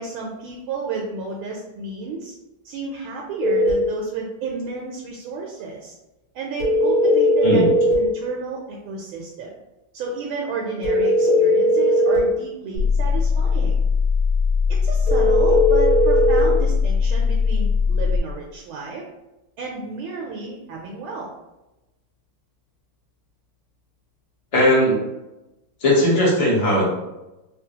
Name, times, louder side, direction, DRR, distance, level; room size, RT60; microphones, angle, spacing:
voice 1, 0.0-2.3 2.6-5.9 6.3-7.7 7.9-9.5 9.9-13.8 14.8-19.0 19.6-21.3, right 4 dB, 75° right, -2 dB, 1.3 m, -32 dB
sound 1, 3.4-3.8 6.6-8.0 10.8-12.2 15.1-16.5, equal, 45° left, 1.4 m, -18 dB
sound 2, 12.8-18.2, left 5 dB, 70° left, 1.7 m, -20 dB
voice 2, 24.5-25.0 25.8-26.9, left 1 dB, 30° left, -7 dB, 0.6 m, -17 dB
3.6 x 2.3 x 2.7 m, 0.99 s
omnidirectional pair, 2.4 m